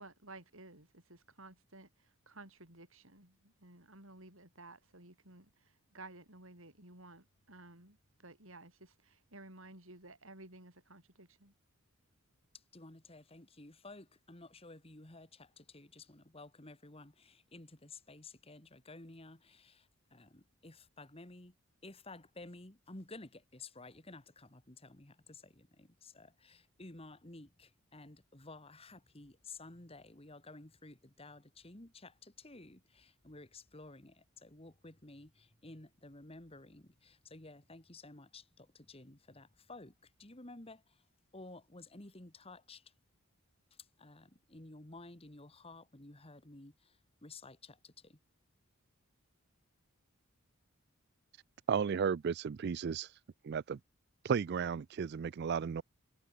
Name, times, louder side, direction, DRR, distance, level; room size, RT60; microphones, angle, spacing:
voice 1, 0.0-11.5, right 2 dB, 65° right, 7.9 m, -55 dB
voice 2, 12.7-21.5 21.8-39.9 40.2-40.8 41.3-42.8 44.0-46.9 47.2-48.2, left 2 dB, 25° left, 2.0 m, -53 dB
voice 3, 51.7-53.2 53.4-53.8 54.2-55.8, right 6 dB, 50° right, 0.3 m, -34 dB
head